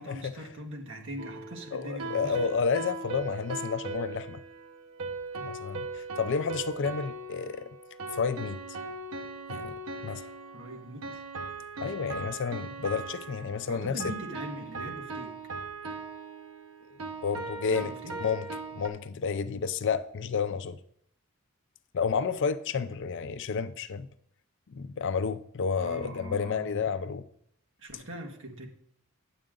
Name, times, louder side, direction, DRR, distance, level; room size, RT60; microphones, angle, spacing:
voice 1, 0.0-2.4 10.5-11.2 13.7-15.4 17.7-18.2 25.8-26.8 27.8-28.7, equal, 65° right, 1.5 m, -41 dB
sound 1, 1.2-18.9, right 3 dB, 80° right, 1.0 m, -39 dB
voice 2, 1.7-4.4 5.3-7.8 8.1-8.6 9.5-9.8 10.0-10.3 11.8-14.0 17.2-17.9 18.2-18.5 18.7-20.8 21.9-24.1 24.7-27.3, left 5 dB, 60° left, 0.5 m, -31 dB
9.7 x 7.7 x 3.8 m
head